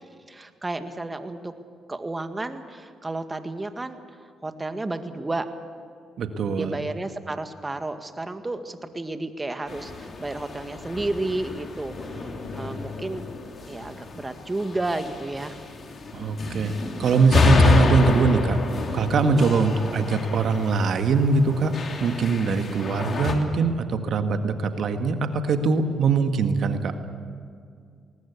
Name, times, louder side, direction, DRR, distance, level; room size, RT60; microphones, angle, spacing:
voice 1, 0.3-1.5 1.9-4.0 4.4-5.5 6.6-13.3 13.7-15.6 16.6-17.1 19.3-19.5, right 2 dB, 25° right, 8 dB, 1.9 m, -32 dB
voice 2, 6.2-6.8 16.1-16.7 17.0-18.6 18.9-26.9, right 4 dB, 65° right, 7 dB, 1.7 m, -22 dB
sound 1, 9.7-23.4, left 3 dB, 50° left, 3.1 m, -28 dB
20.5 x 19.0 x 8.3 m, 2.2 s
hypercardioid pair, 55°, 0 cm